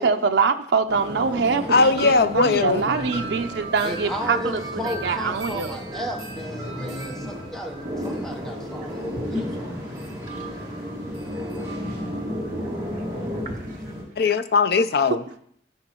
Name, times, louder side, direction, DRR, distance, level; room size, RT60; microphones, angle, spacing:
voice 1, 0.0-5.8, right 5 dB, 75° right, 0.5 m, -24 dB
sound 1, 0.9-14.0, equal, 20° right, 2.1 m, -33 dB
voice 2, 1.7-2.9 14.2-15.2, left 4 dB, 60° left, 0.5 m, -19 dB
voice 3, 3.8-9.5 9.9-10.2, equal, ahead, 0.8 m, -34 dB
voice 4, 9.2-9.6 9.9-10.5 11.3-12.1 12.4-14.0, left 1 dB, 45° right, 1.4 m, -39 dB
13.5 x 5.4 x 3.0 m
head